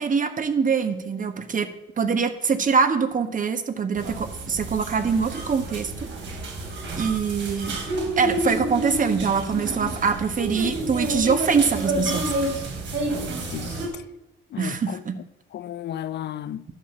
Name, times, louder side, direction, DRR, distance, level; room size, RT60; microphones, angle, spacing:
voice 1, 0.0-1.7 2.0-5.9 7.0-7.8 8.2-12.3 14.6-15.2, right 5 dB, 40° right, 1.3 m, -24 dB
sound 1, 3.9-13.9, right 1 dB, 70° right, 3.5 m, -29 dB
voice 2, 13.1-14.0 14.5-15.0 15.5-16.6, left 11 dB, 60° left, 0.6 m, -34 dB
11.0 x 6.5 x 7.1 m
cardioid pair, 90°, 20 cm